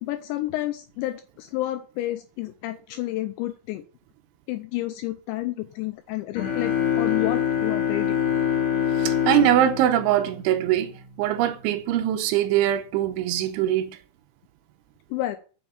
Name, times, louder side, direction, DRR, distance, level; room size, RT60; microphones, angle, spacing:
voice 1, 0.0-3.8 4.5-8.2 15.1-15.4, left 16 dB, 85° left, 2.6 m, -30 dB
sound 1, 6.3-11.0, left 9 dB, 35° left, 3.0 m, -25 dB
voice 2, 9.0-10.9 11.2-14.0, right 12 dB, 80° right, 3.0 m, -22 dB
7.3 x 6.1 x 7.1 m
omnidirectional pair, 5.7 m